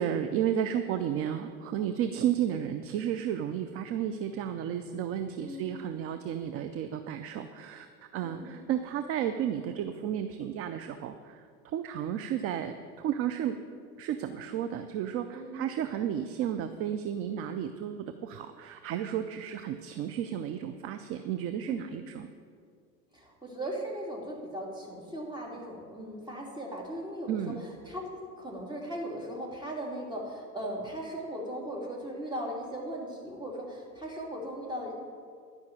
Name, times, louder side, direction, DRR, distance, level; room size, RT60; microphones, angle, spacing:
voice 1, 0.0-7.9 8.1-13.6 14.0-22.3 27.3-27.6, right 9 dB, 30° right, 9 dB, 0.5 m, -32 dB
voice 2, 5.4-5.8 8.2-8.4 15.3-15.7 21.7-21.8 23.1-34.9, equal, 10° right, -2 dB, 2.9 m, -38 dB
12.0 x 5.9 x 9.0 m, 2.1 s
hypercardioid pair, 100°, 50 cm